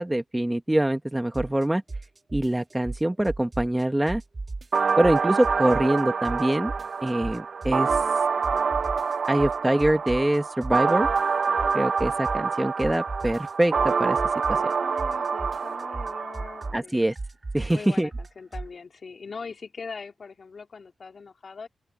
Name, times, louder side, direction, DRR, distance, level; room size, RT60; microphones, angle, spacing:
voice 1, 0.0-1.8 2.3-4.2 5.0-6.7 7.0-8.0 9.3-11.1 11.7-14.2 14.5-14.6 16.7-17.1 17.5-18.1, right 1 dB, 10° right, 1.1 m, -24 dB
sound 1, 1.3-1.6 1.9-6.0 6.2-8.2 8.4-12.5 12.8-18.7, right 3 dB, 30° right, 1.5 m, -35 dB
sound 2, 4.7-16.7, right 5 dB, 60° right, 0.5 m, -26 dB
voice 2, 14.5-17.0 17.7-21.7, left 5 dB, 50° left, 3.5 m, -41 dB
open air
wide cardioid pair, 100°, 0 cm